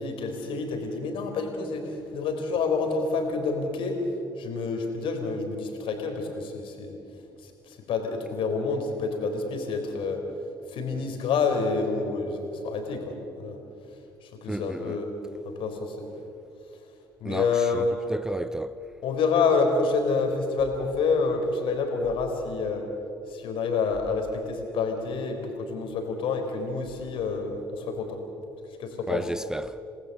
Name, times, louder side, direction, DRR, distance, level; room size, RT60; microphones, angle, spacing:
voice 1, 0.0-4.0 4.4-7.0 7.4-10.2 10.7-13.6 14.2-15.1 15.5-16.1 17.2-17.9 19.0-22.8 23.3-28.2 28.8-29.2, left 4 dB, 50° left, 4.0 m, -28 dB
voice 2, 14.5-15.0 17.3-17.8 18.1-18.7 29.1-29.8, right 1 dB, 5° right, 0.5 m, -32 dB
28.0 x 19.5 x 6.7 m
figure-of-eight pair, 50°, 11 cm